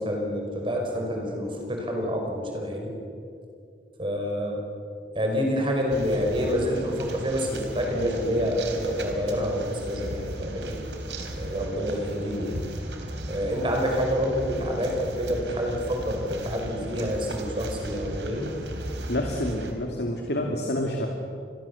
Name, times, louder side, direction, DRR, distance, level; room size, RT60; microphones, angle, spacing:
voice 1, 0.0-2.9 4.0-4.6 5.2-10.8 11.4-12.6 13.3-18.5, equal, 30° right, 1 dB, 5.3 m, -28 dB
sound 1, 5.9-19.7, right 1 dB, 85° right, 3.8 m, -36 dB
voice 2, 19.1-21.1, left 1 dB, 70° left, 1 dB, 2.6 m, -28 dB
29.0 x 22.0 x 7.2 m, 2.4 s
head